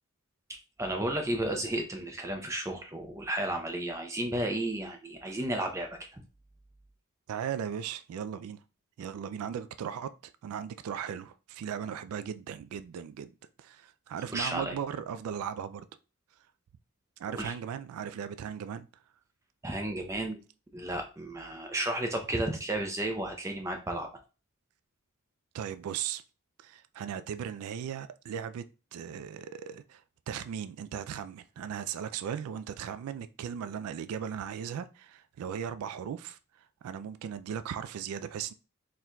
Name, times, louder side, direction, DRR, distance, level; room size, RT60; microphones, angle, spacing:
voice 1, 0.8-6.2 14.3-14.8 17.3-17.5 19.6-20.4 20.7-24.1, right 1 dB, 15° right, 0.5 m, -33 dB
voice 2, 7.3-8.6 9.0-13.3 13.6-15.9 17.2-19.0 25.5-26.2 26.6-28.6 28.9-38.5, right 8 dB, 80° right, 0.3 m, -37 dB
4.4 x 3.7 x 2.2 m
head